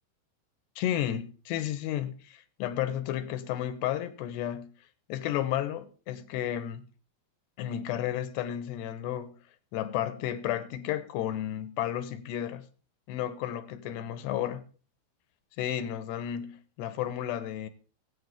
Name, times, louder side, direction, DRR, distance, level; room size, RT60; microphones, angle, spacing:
voice 1, 0.8-4.7 5.1-6.8 7.6-9.4 9.7-12.6 13.1-14.6 15.6-17.7, left 11 dB, 85° left, 3.1 m, -32 dB
20.5 x 8.9 x 3.5 m
omnidirectional pair, 4.8 m